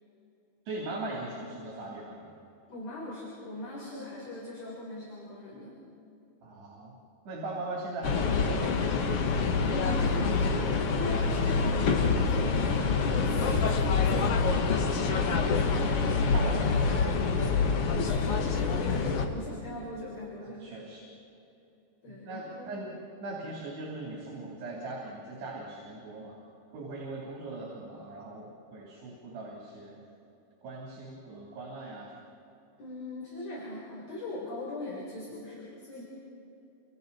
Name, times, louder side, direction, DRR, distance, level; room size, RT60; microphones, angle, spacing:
voice 1, 0.7-2.2 6.4-7.0 7.3-9.2 16.2-17.0 20.4-21.1 22.1-22.9 23.2-26.4 26.7-30.0 30.6-32.1, right 2 dB, 85° right, -4 dB, 5.8 m, -40 dB
voice 2, 2.7-5.7 9.6-14.6 17.5-20.7 22.0-22.7 32.8-36.0, left 1 dB, 40° left, -4 dB, 4.9 m, -40 dB
sound 1, 8.0-19.3, left 4 dB, 60° left, 1.6 m, -26 dB
29.0 x 28.0 x 4.3 m, 2.9 s
omnidirectional pair, 4.6 m